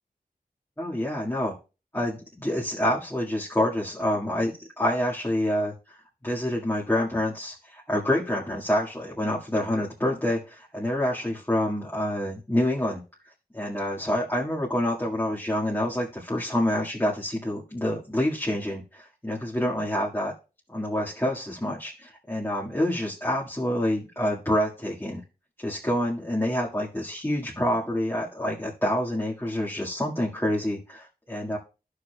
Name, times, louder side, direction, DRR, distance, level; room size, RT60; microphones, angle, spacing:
voice 1, 0.8-1.5 1.9-4.5 4.8-6.0 6.2-13.0 13.5-20.3 20.7-25.2 25.6-31.6, left 1 dB, 15° left, -6 dB, 1.9 m, -27 dB
12.5 x 6.7 x 2.3 m, 0.32 s
wide cardioid pair, 50°, 17 cm